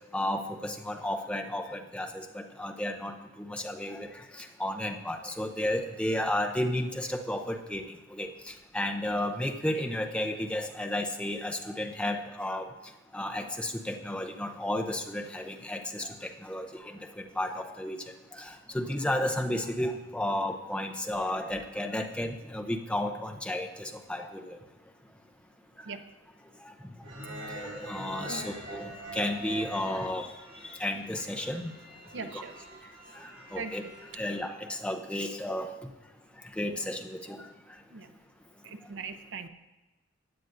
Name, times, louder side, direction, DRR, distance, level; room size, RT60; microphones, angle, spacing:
voice 1, 0.1-4.1 4.3-7.8 8.1-12.7 13.1-18.0 18.3-24.6 26.7-26.8 27.4-30.3 30.6-31.7 32.3-32.4 33.2-33.8 34.1-35.7 36.6-37.4, left 1 dB, 5° left, 3 dB, 0.7 m, -33 dB
sound 1, 27.0-34.4, right 2 dB, 85° right, 2.6 m, -44 dB
voice 2, 32.1-32.5 33.6-33.9 37.9-38.1 38.6-39.5, right 4 dB, 65° right, 9 dB, 0.6 m, -40 dB
15.5 x 9.0 x 2.6 m, 1.1 s
head